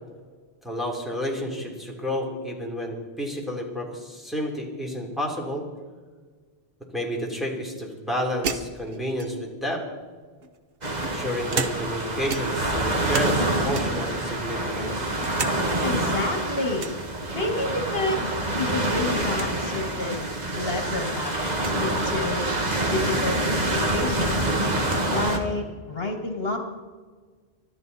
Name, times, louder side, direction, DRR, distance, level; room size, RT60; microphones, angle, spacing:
voice 1, 0.6-5.7 6.9-9.8 11.0-15.1, equal, ahead, -2 dB, 3.2 m, -30 dB
sound 1, 8.4-9.6 10.4-12.0 12.3-13.4 13.7-14.1 14.6-15.6 15.9-16.0 16.8-17.0 18.5-18.8 19.1-19.2 19.3-19.5 20.3-20.4 21.5-21.8 23.5-23.6 23.9-25.1, right 5 dB, 65° right, 1.1 m, -34 dB
sound 2, 10.8-25.4, right 1 dB, 40° right, 1.8 m, -26 dB
voice 2, 15.8-16.9 17.3-18.3 18.6-21.5 21.8-22.4 22.9-24.4 25.1-26.6, left 2 dB, 65° left, 3 dB, 1.9 m, -29 dB
24.0 x 12.5 x 4.1 m, 1.5 s
omnidirectional pair, 1.1 m